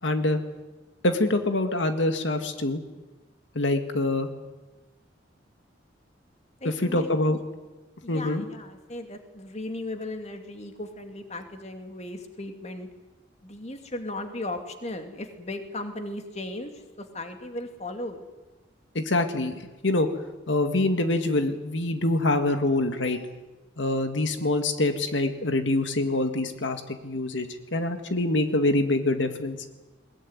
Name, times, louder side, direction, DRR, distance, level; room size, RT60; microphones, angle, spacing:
voice 1, 0.0-0.4 1.0-2.8 3.6-4.3 6.6-7.4 8.1-8.4 19.0-20.1 20.5-23.2 23.8-29.6, left 2 dB, 80° left, 7 dB, 1.9 m, -25 dB
voice 2, 6.6-7.1 8.0-12.9 13.4-18.2, left 1 dB, 35° left, 6 dB, 2.4 m, -36 dB
21.5 x 20.5 x 9.6 m, 1.1 s
head